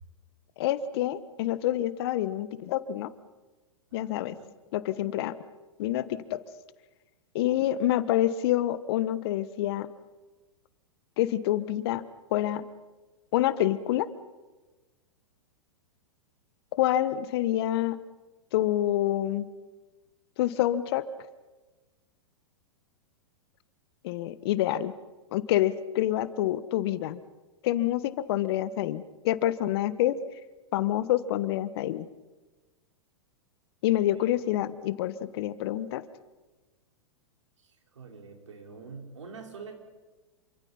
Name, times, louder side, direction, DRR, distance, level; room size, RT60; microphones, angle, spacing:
voice 1, 0.6-3.1 3.9-4.3 4.7-5.3 5.8-6.4 7.3-9.9 11.2-12.0 12.3-12.6 13.3-14.1 16.7-18.0 18.5-19.5 20.4-21.0 24.0-24.9 25.3-27.2 27.6-30.2 30.7-32.1 33.8-36.1, left 13 dB, 55° left, 15 dB, 1.3 m, -27 dB
voice 2, 3.9-4.5 34.1-34.3 37.6-39.7, right 5 dB, 75° right, 3 dB, 4.6 m, -46 dB
27.5 x 25.5 x 5.7 m, 1.2 s
hypercardioid pair, 105°, 15 cm